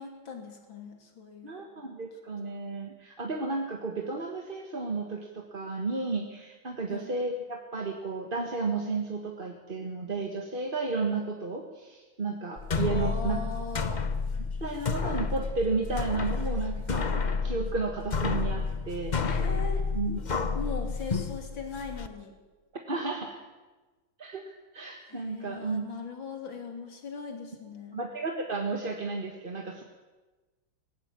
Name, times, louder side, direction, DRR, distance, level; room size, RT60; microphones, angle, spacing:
voice 1, 0.0-1.6 6.9-7.1 12.9-14.0 19.2-19.8 20.6-22.4 25.1-28.0, left 4 dB, 70° left, 4 dB, 3.6 m, -40 dB
voice 2, 1.4-13.4 14.6-19.1 19.9-20.2 22.9-23.4 24.2-25.9 27.9-29.8, right 3 dB, 30° right, 2 dB, 1.6 m, -33 dB
sound 1, 12.6-22.1, left 4 dB, 45° left, 0.6 m, -30 dB
19.0 x 15.5 x 9.0 m, 1.2 s
omnidirectional pair, 2.2 m